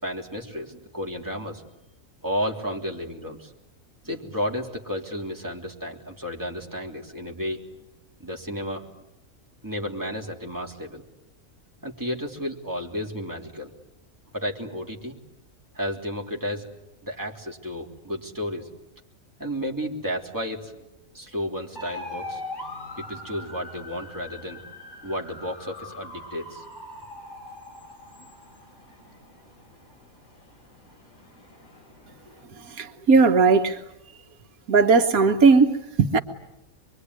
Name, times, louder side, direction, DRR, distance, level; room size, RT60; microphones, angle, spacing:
voice 1, 0.0-1.6 2.2-3.5 4.0-7.6 8.2-8.8 9.6-11.0 11.8-13.7 14.3-15.2 15.7-16.7 17.0-18.7 19.4-20.7 21.1-22.4 23.0-24.6 25.0-26.6, equal, 15° right, -1 dB, 3.3 m, -32 dB
sound 1, 21.8-32.4, left 2 dB, 60° left, 5.8 m, -42 dB
voice 2, 32.6-33.8 34.7-36.2, right 4 dB, 85° right, 6 dB, 1.7 m, -18 dB
26.0 x 23.0 x 9.7 m, 0.90 s
omnidirectional pair, 1.5 m